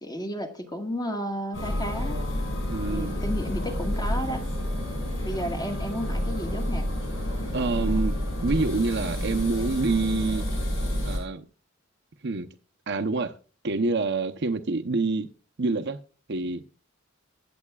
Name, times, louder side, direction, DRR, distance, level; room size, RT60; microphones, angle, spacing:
voice 1, 0.0-2.2 2.9-4.5 5.2-6.9, equal, 20° left, 1.7 m, -32 dB
sound 1, 1.5-11.2, equal, 75° left, 6.4 m, -29 dB
voice 2, 2.7-3.2 7.5-10.5 11.0-11.5 12.2-12.5 12.9-13.3 13.6-15.3 15.6-16.0 16.3-16.6, right 3 dB, 60° right, 0.8 m, -27 dB
23.0 x 7.8 x 2.4 m
head